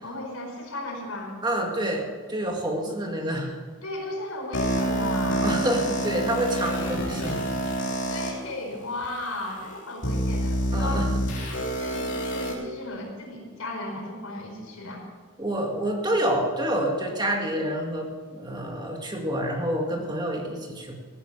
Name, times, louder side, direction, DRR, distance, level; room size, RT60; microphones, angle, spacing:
voice 1, 0.0-1.3 3.8-5.5 8.1-11.1 11.6-15.0, left 2 dB, 90° left, 0 dB, 4.7 m, -35 dB
voice 2, 1.4-3.5 5.4-7.4 10.7-11.1 15.4-20.9, right 1 dB, 20° right, 1 dB, 2.0 m, -28 dB
sound 1, 4.5-8.3 9.0-9.1 10.0-12.5, right 1 dB, 55° left, 3.5 m, -27 dB
17.0 x 9.9 x 6.8 m, 1.5 s
head